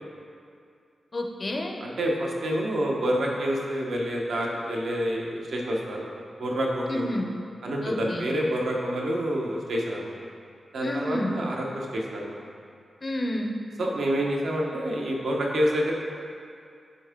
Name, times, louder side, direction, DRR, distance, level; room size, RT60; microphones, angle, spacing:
voice 1, 1.1-1.7 6.9-7.3 7.8-8.3 10.8-11.4 13.0-13.5, left 1 dB, 30° left, 2 dB, 0.5 m, -30 dB
voice 2, 1.8-6.1 6.4-7.0 7.6-10.2 10.7-12.4 13.8-15.9, equal, 80° right, -2 dB, 0.9 m, -28 dB
9.3 x 3.7 x 3.6 m, 2.4 s
wide cardioid pair, 175°, 0 cm